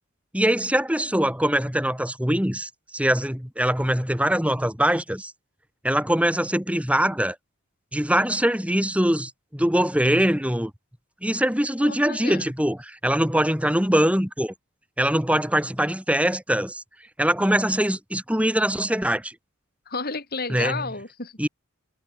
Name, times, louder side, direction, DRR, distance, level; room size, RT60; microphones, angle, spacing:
voice 1, 0.3-5.3 5.8-7.4 7.9-10.7 11.2-14.5 15.0-16.8 17.2-19.3 20.5-20.8 21.4-21.5, right 1 dB, 5° right, 4.1 m, -23 dB
voice 2, 11.8-12.5 19.9-21.3, left 4 dB, 45° left, 4.8 m, -32 dB
head